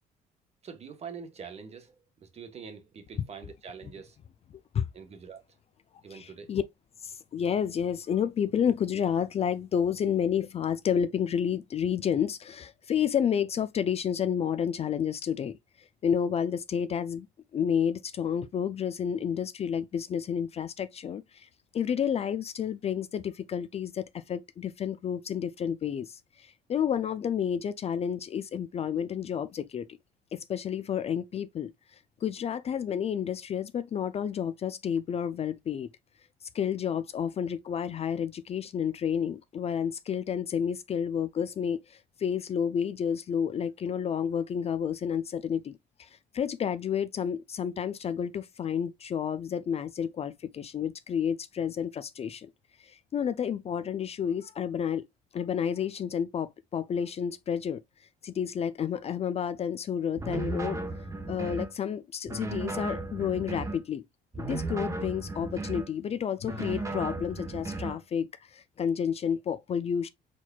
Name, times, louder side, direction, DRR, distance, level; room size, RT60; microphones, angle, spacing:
voice 1, 0.6-4.2 4.9-5.4 6.0-6.5, right 6 dB, 40° right, 1.2 m, -44 dB
voice 2, 6.1-6.6 7.0-15.6 16.0-17.3 17.5-29.9 30.3-31.7 32.2-35.9 36.5-52.5 52.8-55.1 55.3-57.8 58.2-60.8 61.3-64.0 64.4-70.1, left 8 dB, 40° left, 0.4 m, -30 dB
sound 1, 60.2-61.7 62.3-63.8 64.3-65.9 66.4-68.0, right 2 dB, 20° right, 1.0 m, -35 dB
4.6 x 4.1 x 2.3 m
cardioid pair, 110°, 17 cm